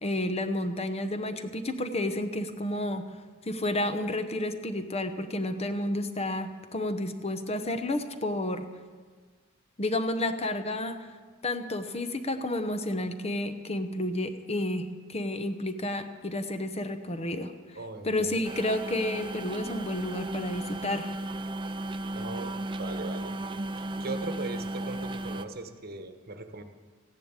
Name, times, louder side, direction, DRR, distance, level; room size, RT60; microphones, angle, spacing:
voice 1, 0.0-3.2 3.5-8.7 9.8-11.0 11.4-17.5 18.0-21.1, left 1 dB, 30° left, 8 dB, 0.9 m, -31 dB
voice 2, 17.7-18.4 22.1-23.4 23.8-26.6, right 3 dB, 50° right, 7 dB, 1.2 m, -39 dB
sound 1, 18.4-25.4, right 1 dB, 25° right, 0.6 m, -35 dB
15.0 x 10.5 x 8.9 m, 1.5 s
head